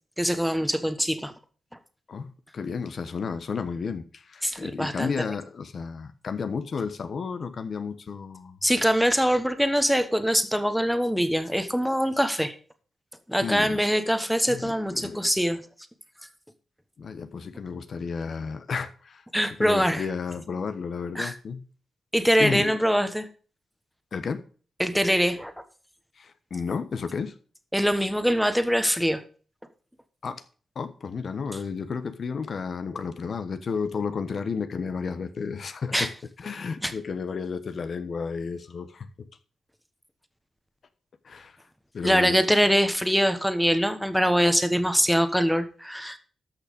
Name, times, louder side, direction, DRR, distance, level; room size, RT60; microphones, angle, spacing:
voice 1, 0.2-1.3 4.4-5.1 8.6-12.5 13.3-15.6 19.3-20.0 21.2-21.3 22.1-23.3 24.8-25.5 27.7-29.2 35.9-36.1 36.8-36.9 42.0-46.2, equal, ahead, 1.2 m, -23 dB
voice 2, 2.1-8.6 13.4-13.8 14.5-15.2 17.0-19.2 19.6-21.6 22.4-22.7 24.1-24.4 26.2-27.3 30.2-30.4 30.7-36.1 36.4-39.3 41.2-41.6 41.9-42.4, left 5 dB, 55° left, 1.1 m, -32 dB
13.0 x 5.9 x 5.2 m
cardioid pair, 100°, 0 cm